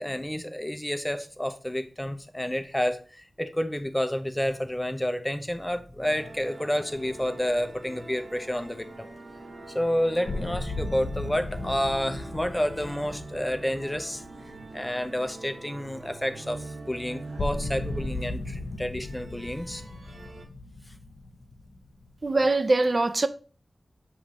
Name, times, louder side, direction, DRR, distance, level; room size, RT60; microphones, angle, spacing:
voice 1, 0.0-9.1 9.7-14.2 14.7-19.8, equal, 10° left, 0.6 m, -30 dB
sound 1, 6.0-20.5, right 2 dB, 75° right, 1.0 m, -44 dB
sound 2, 6.9-8.3 8.6-8.7 9.7-9.8 10.3-15.6 15.9-16.0 16.6-16.7 17.4-22.6, left 2 dB, 75° left, 0.8 m, -37 dB
voice 2, 22.2-23.3, right 2 dB, 40° right, 0.4 m, -22 dB
7.1 x 3.1 x 4.9 m
wide cardioid pair, 105°, 0 cm